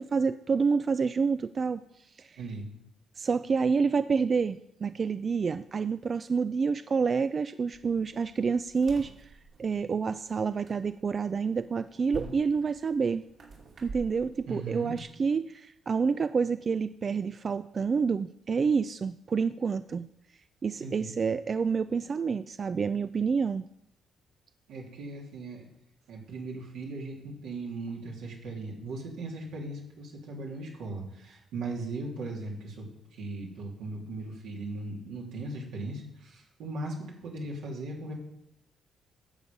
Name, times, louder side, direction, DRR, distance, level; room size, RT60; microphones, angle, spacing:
voice 1, 0.0-1.8 2.2-2.4 3.2-9.3 9.6-13.2 13.8-20.1 20.6-23.6, right 5 dB, 40° right, 12 dB, 0.3 m, -28 dB
voice 2, 2.4-2.7 14.5-15.0 20.8-21.1 24.7-25.7 26.1-38.1, right 2 dB, 85° right, -2 dB, 2.9 m, -38 dB
sound 1, 7.7-15.1, right 3 dB, 55° right, 2.6 m, -48 dB
11.0 x 7.2 x 5.3 m, 0.80 s
cardioid pair, 90°, 0 cm